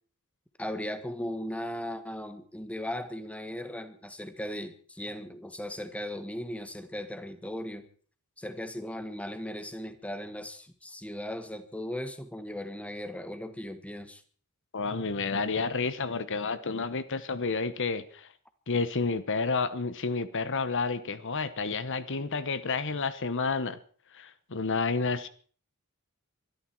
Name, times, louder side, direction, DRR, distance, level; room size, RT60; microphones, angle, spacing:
voice 1, 0.6-7.9 8.4-14.2, left 1 dB, 5° left, 9 dB, 1.6 m, -37 dB
voice 2, 14.7-18.3 18.7-23.8 24.1-25.3, left 4 dB, 60° left, 13 dB, 1.1 m, -30 dB
23.5 x 13.0 x 4.6 m, 0.44 s
head